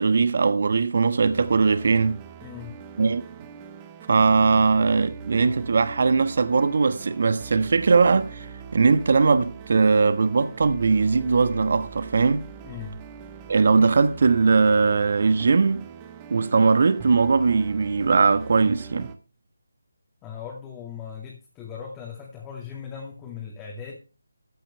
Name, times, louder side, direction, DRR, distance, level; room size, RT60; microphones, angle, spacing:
voice 1, 0.0-2.2 3.0-3.2 4.1-12.4 13.5-15.9 16.3-19.1, right 4 dB, 50° right, 1.1 m, -20 dB
sound 1, 1.2-19.1, right 6 dB, 15° right, 1.1 m, -42 dB
voice 2, 2.4-2.8 12.6-13.0 20.2-24.0, left 7 dB, 10° left, 2.4 m, -38 dB
14.0 x 8.9 x 3.2 m
figure-of-eight pair, 160°, 0 cm